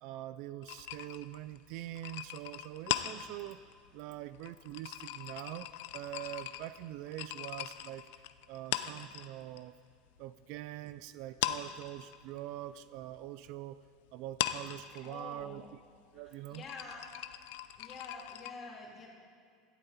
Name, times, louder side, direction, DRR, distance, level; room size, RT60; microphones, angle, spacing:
voice 1, 0.0-3.6 3.9-9.8 10.2-13.8 14.1-15.6 16.1-16.6, right 14 dB, 55° right, 14 dB, 0.4 m, -44 dB
sound 1, 0.6-9.6 9.9-10.9 11.2-18.5, left 14 dB, 75° left, 0.6 m, -40 dB
voice 2, 15.0-15.7 16.1-17.1 17.4-19.1, left 3 dB, 25° left, -3 dB, 2.8 m, -48 dB
17.0 x 12.5 x 4.2 m, 2.2 s
cardioid pair, 165°, 0 cm